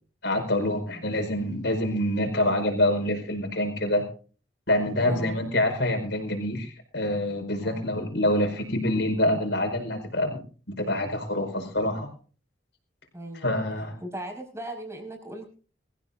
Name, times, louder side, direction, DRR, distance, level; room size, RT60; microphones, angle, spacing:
voice 1, 0.2-4.0 4.7-10.4 10.7-12.1 13.4-14.0, left 1 dB, 65° left, 6 dB, 5.1 m, -26 dB
voice 2, 5.0-5.4 7.6-7.8 13.1-13.5 14.0-15.4, right 1 dB, 15° right, 3 dB, 5.2 m, -38 dB
23.5 x 15.0 x 2.6 m, 0.39 s
head